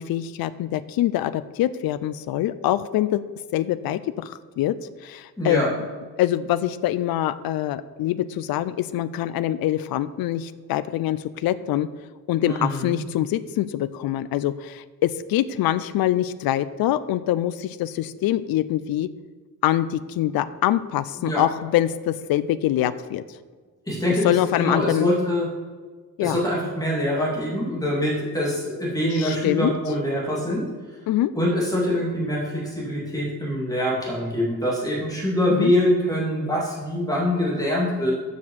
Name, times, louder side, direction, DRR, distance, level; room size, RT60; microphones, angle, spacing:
voice 1, 0.0-3.2 3.5-4.7 5.0-5.6 6.2-11.9 12.3-19.1 19.6-23.2 24.2-25.1 26.2-26.4 29.1-29.7 31.1-31.3 35.5-35.7, left 13 dB, 75° left, 14 dB, 0.5 m, -24 dB
voice 2, 5.4-5.7 12.4-13.0 21.2-21.4 23.9-25.5 26.2-30.6 31.3-38.1, equal, 10° left, -5 dB, 2.7 m, -24 dB
7.3 x 6.2 x 7.4 m, 1.5 s
wide cardioid pair, 175°, 36 cm